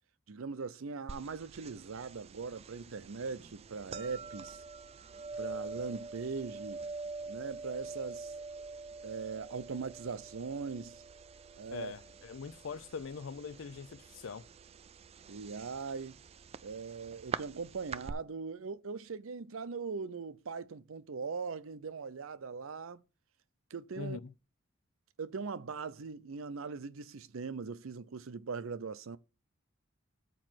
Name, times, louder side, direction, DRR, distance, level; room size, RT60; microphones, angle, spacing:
voice 1, 0.3-4.6 5.4-6.9 7.3-8.3 9.0-11.0 11.6-11.9 15.3-16.1 16.6-23.0 23.7-24.2 25.2-29.2, right 5 dB, 85° right, 0.6 m, -40 dB
sound 1, 1.1-18.1, right 4 dB, 30° right, 0.3 m, -45 dB
voice 2, 11.7-14.5 24.0-24.3, left 5 dB, 70° left, 0.5 m, -42 dB
8.6 x 3.1 x 6.2 m
head